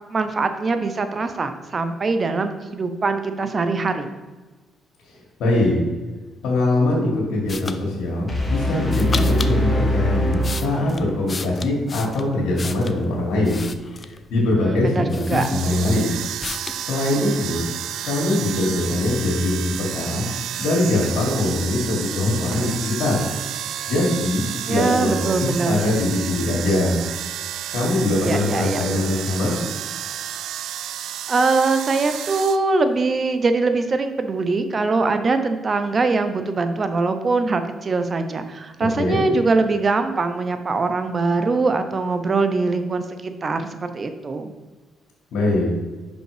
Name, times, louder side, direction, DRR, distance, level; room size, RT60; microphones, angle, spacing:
voice 1, 0.1-4.1 14.6-15.5 24.7-25.8 28.2-28.8 31.3-44.5, right 3 dB, 40° right, 9 dB, 0.7 m, -22 dB
voice 2, 5.1-5.8 6.4-13.6 14.0-16.1 16.7-17.7 18.0-20.2 20.6-23.2 23.9-27.0 27.7-29.6 39.0-39.2 45.3-45.7, left 2 dB, 75° left, -4 dB, 1.9 m, -22 dB
sound 1, 7.5-7.8 8.9-9.6 10.2-13.0 13.4-14.2 14.8-14.9 15.1-16.0 16.4-16.8, left 4 dB, 35° left, 0.4 m, -33 dB
sound 2, 8.3-11.3, equal, 15° left, 1.5 m, -22 dB
sound 3, 15.4-32.6, right 10 dB, 80° right, 0.3 m, -31 dB
5.7 x 5.3 x 4.9 m, 1.3 s
cardioid pair, 90°, 0 cm